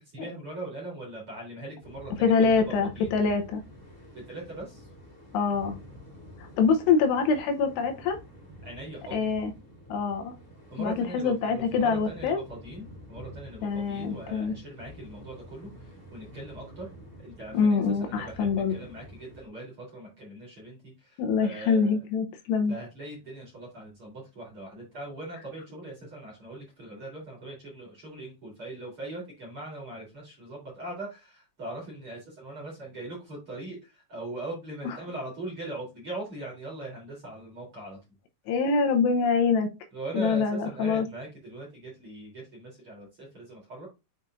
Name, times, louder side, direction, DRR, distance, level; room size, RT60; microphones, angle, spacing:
voice 1, 0.1-3.1 4.3-4.8 8.6-9.2 10.7-16.9 17.2-22.0 22.7-38.0 39.9-43.9, right 2 dB, 30° right, -2 dB, 3.8 m, -40 dB
sound 1, 1.8-19.5, equal, 20° left, 1.8 m, -48 dB
voice 2, 2.2-3.6 5.3-5.8 6.6-8.2 9.1-9.5 9.9-10.3 10.8-12.4 13.6-14.6 17.5-18.7 21.2-22.8 34.8-35.0 38.5-39.7 40.1-41.1, left 5 dB, 80° left, 5 dB, 2.7 m, -25 dB
7.8 x 5.4 x 2.5 m, 0.25 s
omnidirectional pair, 5.4 m